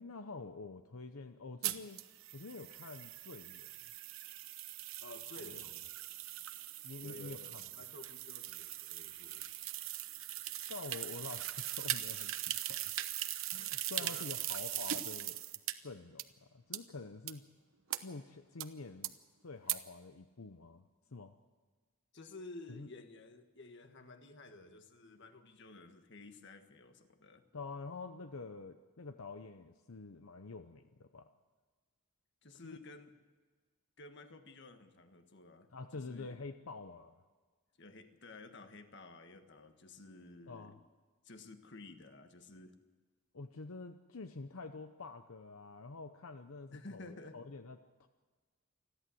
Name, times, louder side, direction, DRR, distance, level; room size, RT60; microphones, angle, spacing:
voice 1, 0.0-2.0 2.3-3.7 6.8-7.6 10.7-12.8 13.5-15.4 15.8-17.4 18.0-19.1 19.4-20.8 21.1-21.4 22.7-22.9 27.5-31.3 32.6-32.8 35.7-37.2 40.5-40.8 43.3-48.1, left 3 dB, 80° left, 8 dB, 0.8 m, -47 dB
sound 1, 1.6-15.7 16.2-16.3 16.7-16.8 17.3-17.4 17.9-18.0 18.6-18.7 19.0-19.1 19.7-19.8, right 13 dB, 70° right, 1.0 m, -40 dB
voice 2, 5.0-5.9 7.0-9.4 14.0-14.3 22.1-27.4 32.4-33.1 34.0-35.7 35.9-36.4 37.8-40.7 41.2-42.7 46.7-47.4, left 2 dB, 55° left, 7 dB, 1.6 m, -53 dB
29.0 x 11.5 x 7.8 m, 1.4 s
head